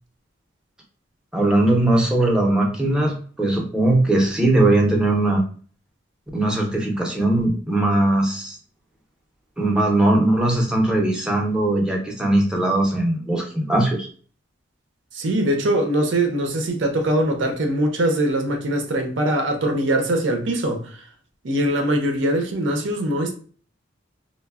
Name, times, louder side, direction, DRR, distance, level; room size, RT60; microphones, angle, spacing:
voice 1, 1.3-5.4 6.3-8.6 9.6-14.1, right 1 dB, 5° right, 0.5 m, -20 dB
voice 2, 15.1-21.0 21.4-23.3, right 1 dB, 75° right, 0.6 m, -22 dB
3.1 x 2.0 x 2.3 m
head